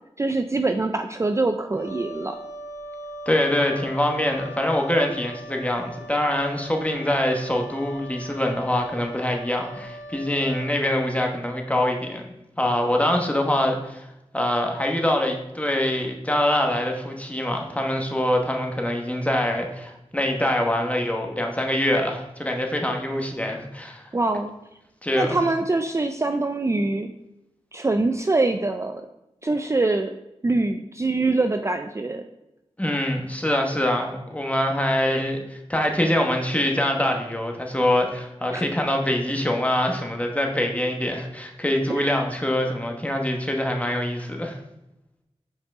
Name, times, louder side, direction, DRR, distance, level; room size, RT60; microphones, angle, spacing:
voice 1, 0.2-2.4 24.1-24.5 25.1-27.1 27.7-29.1 29.4-30.1 30.4-32.2 38.5-38.6 41.9-42.1, right 2 dB, 25° right, 7 dB, 0.4 m, -24 dB
Wind instrument woodwind instrument, 1.7-10.9, equal, 65° left, 1.5 m, -40 dB
voice 2, 3.3-12.2 12.6-14.1 14.3-24.1 25.0-25.4 32.8-44.6, left 1 dB, 10° left, 2 dB, 1.0 m, -24 dB
5.6 x 4.7 x 4.8 m, 0.89 s
wide cardioid pair, 80°, 11 cm